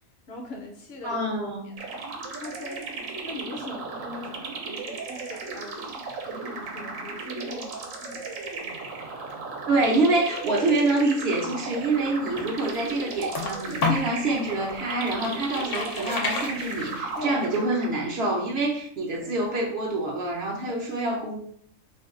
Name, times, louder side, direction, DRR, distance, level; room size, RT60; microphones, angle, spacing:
voice 1, 0.3-1.2 1.6-2.0 2.4-2.8 3.2-5.9 6.3-8.5 17.2-17.4 19.0-19.4 20.7-20.8, left 2 dB, 60° left, 1 dB, 0.8 m, -41 dB
voice 2, 1.0-1.7 9.7-21.4, right 2 dB, 60° right, -1 dB, 0.8 m, -26 dB
sound 1, 1.8-18.2, right 4 dB, 80° right, 1.0 m, -36 dB
sound 2, 12.1-14.2 14.7-17.2, left 4 dB, 75° left, 0.3 m, -30 dB
2.6 x 2.2 x 3.6 m, 0.63 s
omnidirectional pair, 1.4 m